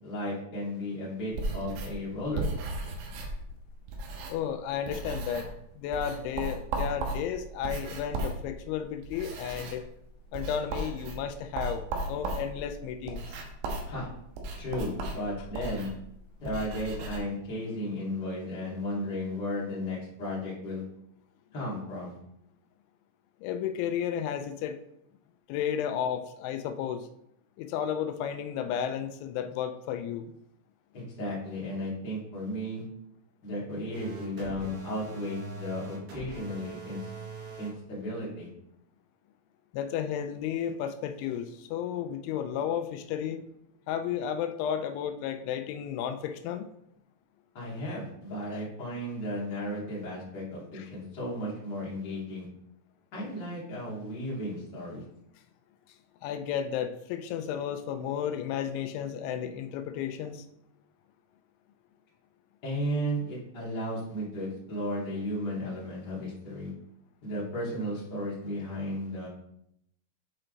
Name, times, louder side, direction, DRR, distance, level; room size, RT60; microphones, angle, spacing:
voice 1, 0.0-2.9 13.9-14.1 14.6-15.9 16.4-20.8 21.5-22.2 30.9-32.8 33.4-37.1 37.6-38.5 47.5-52.5 53.1-55.0 62.6-66.7 67.2-69.3, equal, 30° left, -7 dB, 2.3 m, -34 dB
sound 1, 1.3-4.6 4.8-5.6 5.9-17.2, right 2 dB, 85° right, 3.6 m, -36 dB
voice 2, 4.3-5.5 5.8-9.8 10.3-11.8 12.1-13.4 23.4-24.8 25.5-27.1 27.6-30.2 39.7-43.4 43.9-46.7 50.7-50.9 56.2-60.5, left 9 dB, 85° left, 9 dB, 3.0 m, -33 dB
sound 2, 33.9-37.7, right 3 dB, 65° right, 3.6 m, -42 dB
9.9 x 4.5 x 3.9 m, 0.77 s
omnidirectional pair, 5.3 m